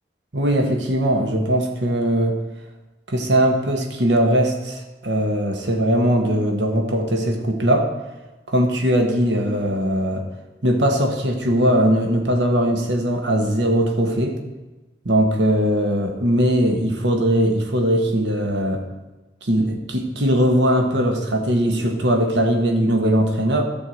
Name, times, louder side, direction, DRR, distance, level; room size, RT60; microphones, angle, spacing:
voice 1, 0.3-2.4 3.1-7.9 8.5-10.2 10.6-14.4 15.0-18.8 19.4-23.6, right 1 dB, 85° right, 3 dB, 1.5 m, -20 dB
12.0 x 4.6 x 7.9 m, 1.1 s
head